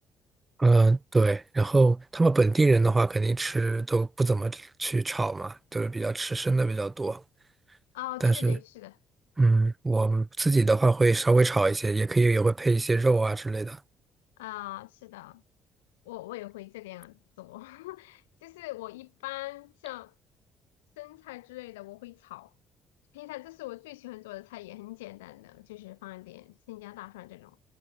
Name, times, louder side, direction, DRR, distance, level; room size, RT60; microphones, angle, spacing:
voice 1, 0.6-7.2 8.2-8.6 9.4-13.8, right 3 dB, 20° right, 0.4 m, -23 dB
voice 2, 7.9-9.0 14.4-15.4 16.1-20.1 21.0-22.5 23.1-27.6, left 19 dB, 85° left, 1.8 m, -42 dB
hypercardioid pair, 55°, 0 cm